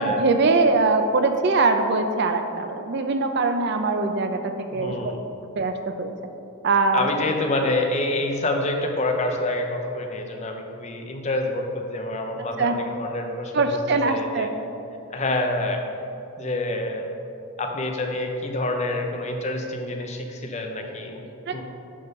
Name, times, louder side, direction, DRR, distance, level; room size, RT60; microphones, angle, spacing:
voice 1, 0.0-5.1 5.5-6.1 6.6-7.1 12.6-12.8 13.5-14.5 21.5-21.6, right 3 dB, 50° right, 7 dB, 0.4 m, -22 dB
voice 2, 4.7-5.2 6.9-13.7 14.1-14.5 15.1-15.8 16.4-17.1 17.6-21.2 21.5-21.6, left 2 dB, 30° left, 3 dB, 0.6 m, -27 dB
9.8 x 3.7 x 5.3 m, 2.8 s
head